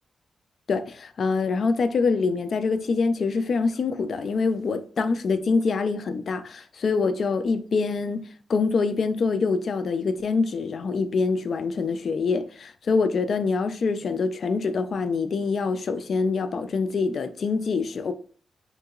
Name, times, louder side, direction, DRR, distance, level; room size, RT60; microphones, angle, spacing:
voice 1, 0.7-18.1, left 4 dB, 60° left, 0.3 m, -25 dB
3.7 x 2.8 x 2.3 m
wide cardioid pair, 145°, 0 cm